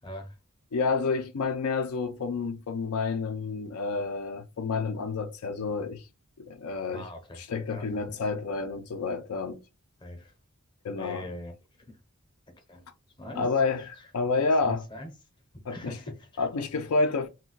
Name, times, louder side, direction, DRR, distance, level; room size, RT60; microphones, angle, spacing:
voice 1, 0.0-0.4 6.9-7.4 7.7-8.0 10.0-10.3 11.0-12.0 12.5-12.9 13.2-13.5 13.8-14.1 14.4-15.1 15.5-16.5, left 1 dB, 20° left, 0.6 m, -42 dB
voice 2, 0.7-6.0 6.4-7.0 7.5-9.6 10.8-11.2 13.4-13.8 14.1-14.8 15.7-15.9 16.4-17.3, left 4 dB, 80° left, 0.4 m, -29 dB
2.4 x 2.1 x 3.8 m
head